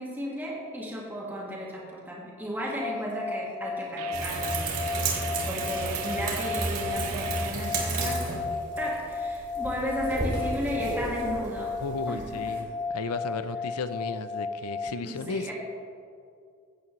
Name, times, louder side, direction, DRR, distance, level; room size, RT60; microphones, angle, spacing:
voice 1, 0.0-5.2 5.4-8.3 8.8-11.8 12.1-12.4 15.0-15.5, equal, 10° right, -5 dB, 1.7 m, -34 dB
sound 1, 2.8-14.9, left 4 dB, 25° left, 0.4 m, -34 dB
sound 2, 4.0-7.6, right 8 dB, 85° right, 0.5 m, -39 dB
sound 3, 4.1-12.6, right 2 dB, 50° right, 2.7 m, -32 dB
voice 2, 11.8-15.5, left 4 dB, 85° left, 12 dB, 0.5 m, -34 dB
15.5 x 8.6 x 3.1 m, 2.4 s
head